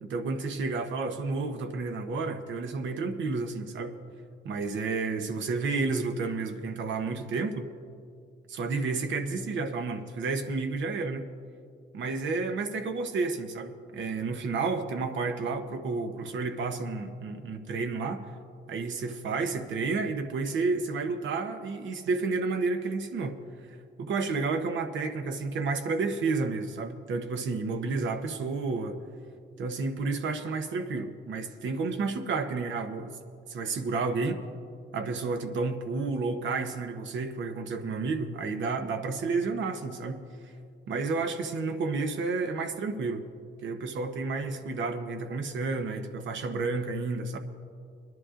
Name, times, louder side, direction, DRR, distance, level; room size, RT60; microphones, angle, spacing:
voice 1, 0.0-3.9 4.4-7.7 8.5-11.3 11.9-18.2 18.7-23.3 24.0-29.0 29.6-33.2 33.5-34.4 34.9-40.2 40.9-43.2 43.6-47.4, right 4 dB, 70° right, 6 dB, 1.0 m, -31 dB
23.5 x 11.0 x 2.5 m, 2.3 s
cardioid pair, 90°, 20 cm